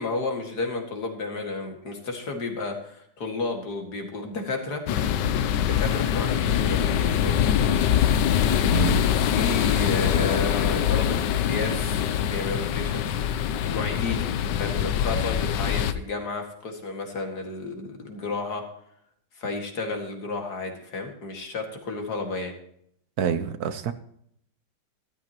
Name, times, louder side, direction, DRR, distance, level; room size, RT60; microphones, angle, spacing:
voice 1, 0.0-4.8 5.8-8.1 9.0-13.2 13.6-18.6 19.4-22.5, left 3 dB, 65° left, 3 dB, 2.6 m, -32 dB
sound 1, 4.9-15.9, left 9 dB, 85° left, 1.4 m, -23 dB
voice 2, 8.7-9.0 23.2-23.9, right 8 dB, 65° right, 11 dB, 1.2 m, -26 dB
13.5 x 13.5 x 3.0 m, 0.68 s
omnidirectional pair, 1.8 m